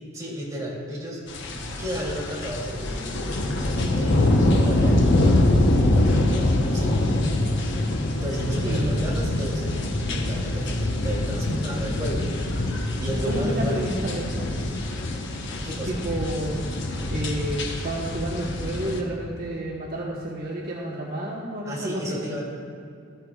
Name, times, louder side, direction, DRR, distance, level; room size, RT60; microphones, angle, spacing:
voice 1, 0.1-1.2 1.5-3.3 3.9-5.4 6.3-6.9 8.2-9.7 10.0-12.6 13.0-13.9 15.6-15.9 21.6-22.4, equal, 15° right, -5 dB, 2.8 m, -32 dB
sound 1, 1.3-19.0, left 1 dB, 65° left, 1.0 m, -24 dB
voice 2, 8.6-9.0 13.2-14.5 15.9-16.6 17.1-22.2, right 1 dB, 50° right, -4 dB, 1.2 m, -30 dB
13.5 x 12.5 x 2.4 m, 2.4 s
head